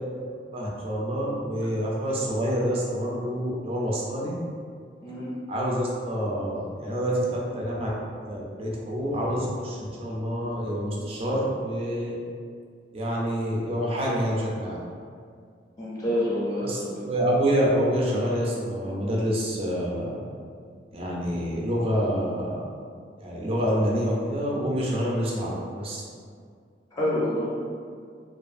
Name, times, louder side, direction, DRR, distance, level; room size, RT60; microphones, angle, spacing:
voice 1, 0.5-4.3 5.5-7.9 8.2-12.1 12.9-14.8 16.6-20.3 20.9-22.6 23.2-26.0, equal, 35° right, -4 dB, 0.5 m, -27 dB
voice 2, 5.0-5.3 15.8-17.1 26.9-27.6, left 1 dB, 20° left, -7 dB, 0.5 m, -27 dB
2.5 x 2.4 x 2.5 m, 2.1 s
head